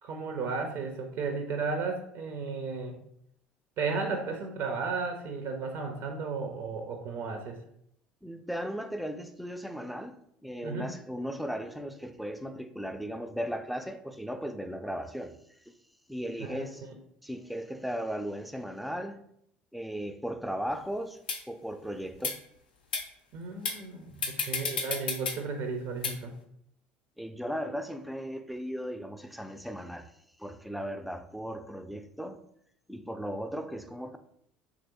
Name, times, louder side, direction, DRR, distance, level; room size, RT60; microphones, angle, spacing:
voice 1, 0.0-3.0 3.8-7.6 10.6-10.9 16.4-16.7 23.3-26.3, right 4 dB, 60° right, 0.5 m, -34 dB
voice 2, 8.2-10.1 10.4-15.4 15.7-15.8 16.1-16.9 17.2-19.2 19.7-21.2 21.5-22.4 24.1-24.4 27.2-30.1 30.4-32.4 32.9-34.2, equal, ahead, 0.3 m, -36 dB
sound 1, 20.7-20.8 21.3-21.4 22.1-22.3 22.9-23.0 23.6-23.8 24.2-25.4 26.0-26.1, left 5 dB, 90° left, 0.4 m, -31 dB
2.9 x 2.5 x 2.9 m
hypercardioid pair, 65°, 5 cm